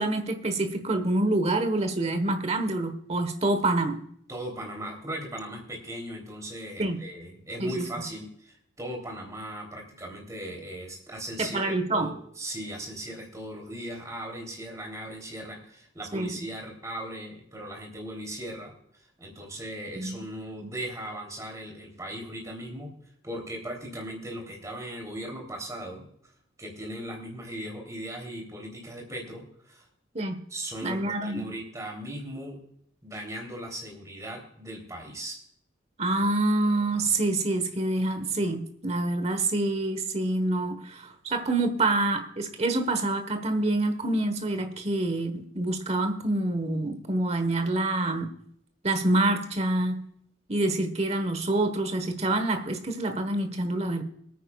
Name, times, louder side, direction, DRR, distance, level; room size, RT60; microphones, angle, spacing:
voice 1, 0.0-4.0 6.8-7.0 7.6-7.9 11.4-12.1 16.1-16.3 19.9-20.2 30.1-30.4 30.8-31.5 36.0-48.3 48.8-50.0 50.5-54.0, right 2 dB, 35° right, 8 dB, 1.3 m, -27 dB
voice 2, 4.3-18.7 19.2-22.9 23.2-26.1 26.6-29.9 30.5-32.6 33.0-35.4, right 1 dB, 15° right, 1 dB, 3.3 m, -38 dB
22.5 x 9.5 x 2.4 m, 0.68 s
head